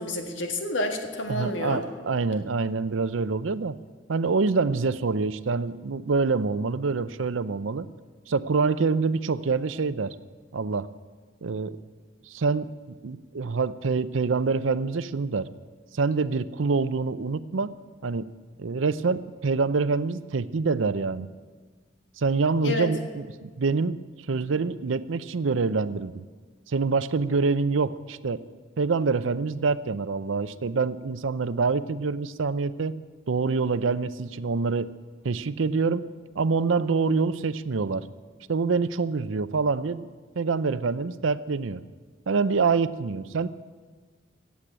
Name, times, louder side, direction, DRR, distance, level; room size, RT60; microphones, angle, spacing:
voice 1, 0.0-1.8 22.6-22.9, left 1 dB, 70° left, 4 dB, 1.7 m, -29 dB
voice 2, 1.3-3.8 4.1-7.9 8.3-10.2 10.5-10.9 11.4-11.8 12.3-12.7 13.0-15.5 15.9-17.7 18.0-18.3 18.6-21.3 22.2-24.0 24.3-26.2 26.7-28.4 28.8-33.0 33.3-34.9 35.2-36.1 36.4-38.1 38.5-40.1 40.4-41.8 42.3-43.5, right 4 dB, 85° right, 15 dB, 0.6 m, -26 dB
14.5 x 8.4 x 8.8 m, 1.5 s
head